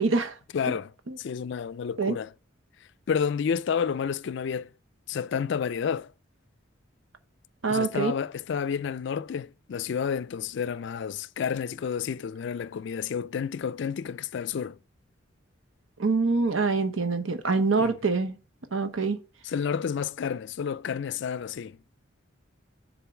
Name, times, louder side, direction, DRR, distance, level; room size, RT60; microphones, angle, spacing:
voice 1, 0.0-0.3 1.1-1.2 2.0-2.2 7.6-8.1 16.0-18.4 18.7-19.2, right 4 dB, 80° right, 1.0 m, -25 dB
voice 2, 0.5-0.9 1.2-2.3 3.1-4.7 5.1-6.1 7.7-14.8 17.8-18.0 19.4-21.8, left 7 dB, 60° left, 0.3 m, -30 dB
7.0 x 3.8 x 5.9 m
head